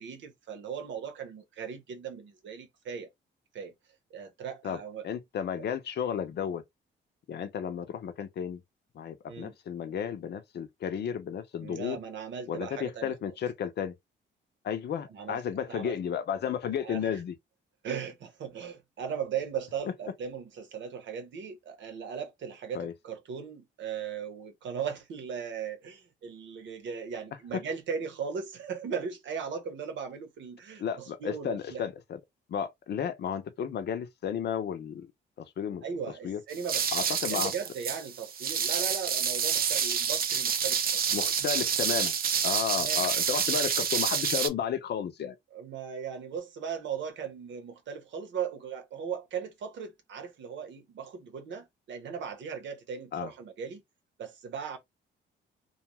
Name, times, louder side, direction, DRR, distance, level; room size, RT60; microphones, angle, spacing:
voice 1, 0.0-3.1 3.5-3.7 4.1-5.1 9.3-9.5 11.6-13.1 15.1-15.4 15.7-16.0 16.8-17.2 17.8-31.8 35.8-41.0 41.4-41.5 42.8-43.1 45.5-53.8 54.2-54.8, right 7 dB, 70° right, 0.9 m, -38 dB
voice 2, 5.0-6.6 7.3-8.6 8.9-12.0 12.5-14.0 14.6-17.3 22.7-22.9 30.8-32.2 32.5-35.1 35.4-35.8 36.2-36.4 36.9-37.5 41.1-42.1 42.4-45.4 53.1-53.3, left 8 dB, 60° left, 0.7 m, -33 dB
sound 1, 36.5-44.5, right 7 dB, 50° right, 0.5 m, -28 dB
2.5 x 2.3 x 3.0 m
cardioid pair, 90°, 20 cm